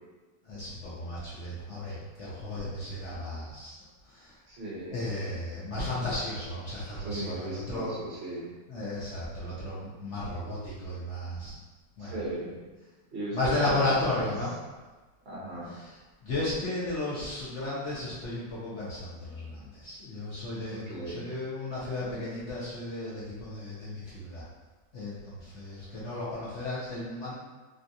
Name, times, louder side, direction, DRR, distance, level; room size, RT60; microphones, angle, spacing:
voice 1, 0.4-3.8 4.1-4.4 4.9-7.9 8.7-11.5 12.0-12.1 13.3-14.5 15.6-24.4 24.9-27.3, left 2 dB, 60° left, -8 dB, 0.7 m, -34 dB
voice 2, 4.5-5.0 6.9-8.5 12.0-12.5 13.1-13.6 14.0-14.2 15.2-15.7 20.7-21.3, right 2 dB, 45° right, -6 dB, 1.0 m, -37 dB
3.6 x 2.4 x 2.7 m, 1.3 s
omnidirectional pair, 2.0 m